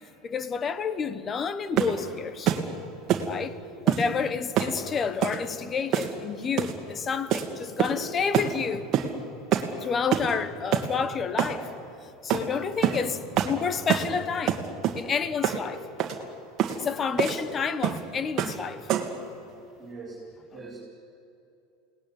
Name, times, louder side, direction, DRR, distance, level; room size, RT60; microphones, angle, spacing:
voice 1, 0.2-2.5 3.2-3.5 3.8-8.9 9.8-11.7 12.2-14.6 15.0-15.8 16.7-18.9, left 6 dB, 20° left, 1.1 m, -29 dB
sound 1, 1.8-2.0 2.5-2.7 3.1-3.3 3.9-4.1 4.6-4.8 5.2-5.4 5.9-6.2 6.6-6.8 7.3-7.5 7.8-8.1 8.3-8.5 8.9-9.1 9.5-9.7 10.1-10.3 10.7-10.9 11.4-11.6 12.3-12.5 12.8-13.0 13.4-13.6 13.9-14.1 14.5-15.0 15.4-15.6 16.0-16.2 16.6-16.8 17.2-17.4 17.8-18.0 18.4-18.6 18.9-19.2, right 10 dB, 35° right, 2.4 m, -25 dB
voice 2, 19.8-20.8, right 3 dB, 10° right, 4.8 m, -43 dB
29.5 x 19.5 x 9.9 m
supercardioid pair, 165°, 0 cm